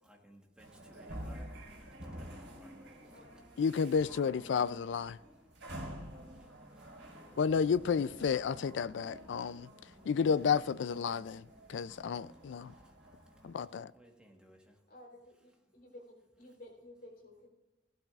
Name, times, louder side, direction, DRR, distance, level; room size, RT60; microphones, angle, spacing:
voice 1, 0.0-1.5 1.8-2.9 6.4-7.2 10.0-10.1 12.5-12.8 13.9-14.8, equal, 5° right, 1.4 m, -60 dB
sound 1, 0.6-13.6, equal, 80° right, 3.4 m, -49 dB
voice 2, 2.9-3.3 14.9-17.5, left 1 dB, 55° left, 3.7 m, -54 dB
voice 3, 3.6-5.2 7.4-9.7 10.1-11.4 11.7-12.7 13.4-13.9, left 6 dB, 75° left, 0.4 m, -31 dB
16.0 x 12.0 x 2.4 m
head